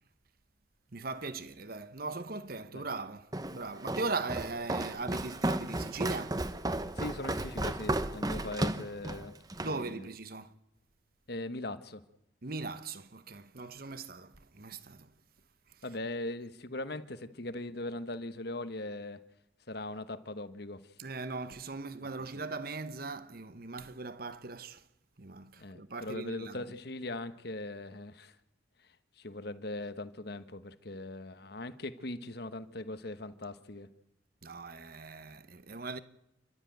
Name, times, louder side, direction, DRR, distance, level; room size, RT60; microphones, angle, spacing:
voice 1, 0.9-6.4 8.4-8.5 9.6-10.5 12.4-15.1 21.0-24.8 25.2-26.6 34.4-36.0, right 3 dB, 50° right, 1.0 m, -39 dB
Walk footsteps, 3.3-9.8, right 1 dB, 20° right, 0.9 m, -34 dB
voice 2, 7.0-9.3 9.6-10.1 11.3-12.0 15.8-19.2 19.7-20.8 25.6-28.3 29.2-33.9, left 2 dB, 55° left, 1.3 m, -40 dB
29.0 x 12.5 x 9.3 m
head